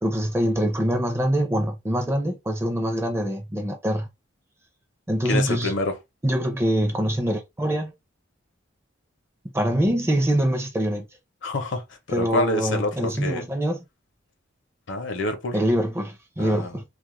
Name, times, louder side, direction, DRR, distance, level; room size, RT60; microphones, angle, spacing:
voice 1, 0.0-4.1 5.1-5.7 6.2-7.9 9.5-11.1 12.1-13.8 15.5-16.8, equal, 15° right, 0.5 m, -24 dB
voice 2, 5.3-5.9 11.4-13.5 14.9-15.6 16.4-16.8, left 2 dB, 65° left, 0.6 m, -27 dB
2.3 x 2.0 x 3.0 m
head